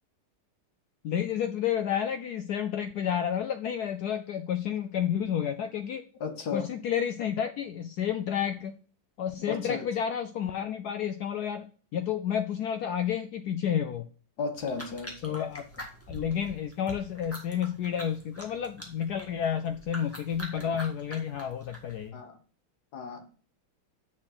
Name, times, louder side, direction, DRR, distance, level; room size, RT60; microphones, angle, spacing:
voice 1, 1.0-6.0 6.5-8.7 9.2-11.7 11.9-14.1 15.2-15.6 16.1-22.2, left 9 dB, 85° left, 0.8 m, -30 dB
voice 2, 6.2-6.7 9.5-9.9 14.4-15.4 22.1-22.4 22.9-23.2, left 5 dB, 55° left, 1.5 m, -35 dB
sound 1, 14.6-22.1, equal, 5° left, 1.4 m, -45 dB
6.5 x 6.1 x 5.8 m
omnidirectional pair, 2.3 m